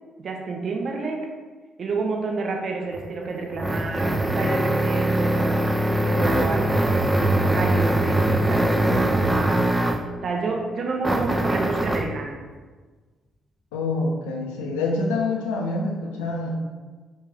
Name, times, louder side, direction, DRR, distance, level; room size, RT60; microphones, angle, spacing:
voice 1, 0.2-1.2 1.8-5.5 5.9-9.6 10.2-12.4, right 3 dB, 50° right, 1 dB, 0.8 m, -29 dB
sound 1, 2.9-10.1 11.0-12.1, right 1 dB, 10° right, 0.4 m, -22 dB
voice 2, 13.7-16.5, left 3 dB, 75° left, 0 dB, 0.6 m, -26 dB
5.4 x 2.5 x 3.4 m, 1.4 s
figure-of-eight pair, 45°, 0 cm